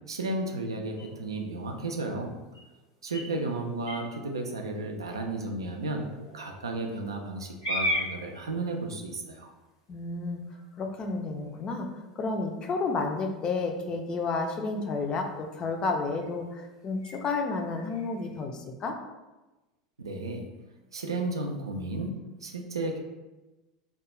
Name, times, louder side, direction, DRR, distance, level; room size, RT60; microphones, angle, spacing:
voice 1, 0.1-2.4 3.0-9.5 20.0-20.5 20.9-23.0, right 2 dB, 80° right, 2 dB, 0.3 m, -33 dB
sound 1, 0.9-18.4, left 1 dB, 90° left, 1.2 m, -41 dB
voice 2, 9.9-10.4 10.8-11.9 12.2-18.9, left 3 dB, 35° left, 4 dB, 0.4 m, -31 dB
2.3 x 2.2 x 2.9 m, 1.1 s
figure-of-eight pair, 80°, 2 cm